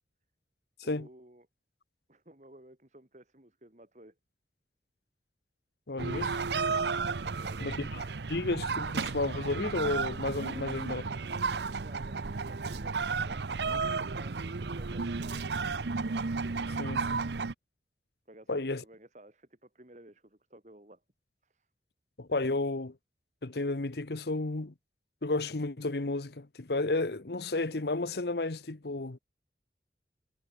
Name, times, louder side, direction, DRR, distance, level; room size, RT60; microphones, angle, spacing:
voice 1, 0.8-1.5 2.1-4.2 7.2-7.7 10.4-11.3 11.6-13.5 13.8-15.4 18.3-21.0 21.4-21.7, right 1 dB, 40° right, 2.4 m, -55 dB
voice 2, 5.9-6.4 7.6-11.0 16.8-17.2 18.5-18.8 22.2-22.9 23.4-24.7 25.2-29.2, left 2 dB, 70° left, 1.0 m, -32 dB
sound 1, 6.0-17.5, right 4 dB, 75° right, 0.8 m, -33 dB
head